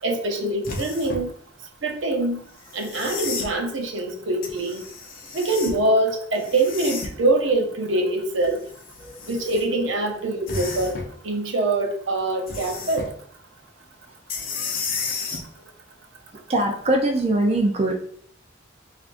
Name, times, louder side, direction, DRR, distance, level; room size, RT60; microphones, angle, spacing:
voice 1, 0.0-1.3 1.8-2.4 2.7-4.8 5.3-8.6 9.3-11.0 11.2-13.1, right 2 dB, 75° right, 3 dB, 0.7 m, -24 dB
sound 1, 0.6-1.3 2.6-3.5 4.4-5.8 6.4-7.3 8.4-9.6 10.5-11.1 12.5-13.1 14.3-15.4 17.2-17.3, left 4 dB, 50° left, 0.7 m, -32 dB
voice 2, 16.5-17.9, right 1 dB, 35° right, 1 dB, 0.4 m, -21 dB
4.6 x 2.4 x 2.5 m, 0.63 s
head